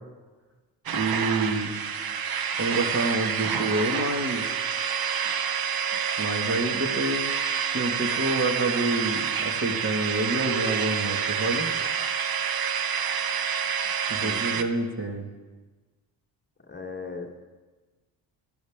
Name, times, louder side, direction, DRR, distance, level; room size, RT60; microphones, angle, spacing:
voice 1, 0.9-1.7 2.6-4.5 6.2-7.2 7.7-11.7 14.1-15.3, right 2 dB, 30° right, 3 dB, 2.1 m, -27 dB
sound 1, 0.9-14.6, right 7 dB, 50° right, 1.0 m, -28 dB
voice 2, 14.2-14.7 16.7-17.4, left 4 dB, 20° left, 2 dB, 1.4 m, -38 dB
17.0 x 12.0 x 3.7 m, 1.3 s
supercardioid pair, 65°, 47 cm